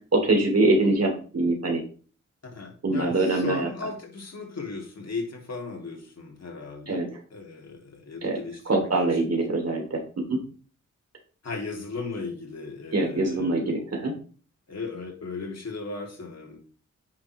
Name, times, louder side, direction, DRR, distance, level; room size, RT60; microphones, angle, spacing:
voice 1, 0.1-1.8 2.8-3.7 6.9-7.2 8.2-10.4 12.9-14.1, right 2 dB, 60° right, 2 dB, 3.1 m, -24 dB
voice 2, 2.4-8.9 9.2-9.3 11.4-13.7 14.7-16.6, left 4 dB, 60° left, 0 dB, 2.9 m, -37 dB
9.5 x 6.5 x 3.3 m, 0.39 s
wide cardioid pair, 80°, 29 cm